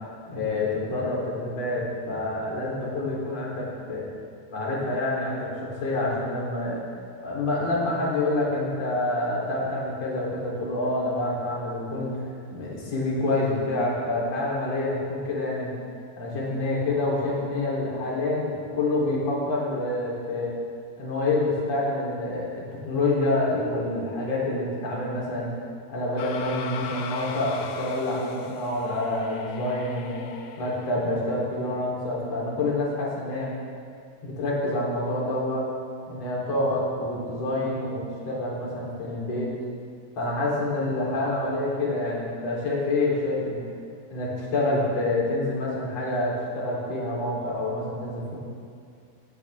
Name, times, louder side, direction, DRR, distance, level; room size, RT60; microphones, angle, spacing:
voice 1, 0.2-4.1 4.5-6.8 7.2-12.2 12.5-15.7 16.2-20.5 21.0-25.5 25.9-30.2 30.6-33.5 34.2-35.7 36.1-39.5 40.2-43.6 44.1-48.4, left 2 dB, 40° left, -5 dB, 4.7 m, -27 dB
sound 1, 26.2-31.2, left 6 dB, 80° left, 2.7 m, -39 dB
20.5 x 16.5 x 3.7 m, 2.2 s
omnidirectional pair, 4.5 m